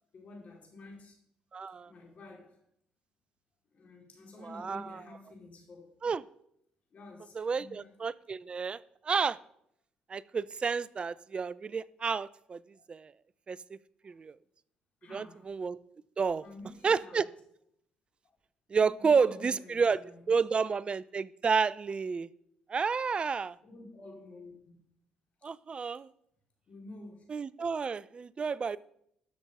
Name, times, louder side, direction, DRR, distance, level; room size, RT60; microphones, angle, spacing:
voice 1, 0.1-1.1 1.9-2.6 3.7-5.9 6.9-7.9 11.0-11.1 12.7-12.8 14.0-14.2 15.0-15.5 16.4-17.3 18.7-20.4 23.6-24.8 26.7-27.2, left 2 dB, 50° left, -1 dB, 4.6 m, -50 dB
voice 2, 1.5-1.9 4.4-5.0 6.0-6.2 7.4-8.8 9.0-9.4 10.1-12.6 12.9-13.1 13.5-13.6 14.0-14.4 15.1-15.8 16.2-16.4 16.8-17.2 18.7-22.3 22.7-23.6 25.4-26.1 27.3-28.8, right 5 dB, 35° right, 20 dB, 0.5 m, -30 dB
12.5 x 6.2 x 5.5 m, 0.73 s
supercardioid pair, 70°, 3 cm